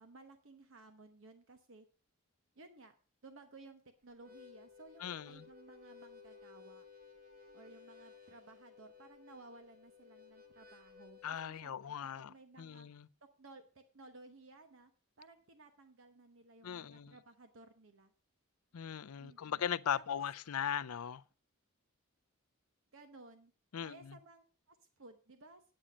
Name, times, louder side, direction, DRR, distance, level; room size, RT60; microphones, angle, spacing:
voice 1, 0.0-1.9 2.5-2.9 3.2-6.9 7.5-12.9 13.4-14.9 15.2-18.1 19.2-19.6 19.9-20.0 22.9-23.5 23.8-25.6, right 2 dB, 65° right, 1.0 m, -57 dB
Harmonica, 4.1-11.5, left 6 dB, 40° right, 2.3 m, -58 dB
voice 2, 5.0-5.4 11.2-13.1 16.6-17.2 18.7-21.2 23.7-24.2, left 8 dB, 90° left, 0.5 m, -39 dB
8.9 x 8.7 x 5.0 m
head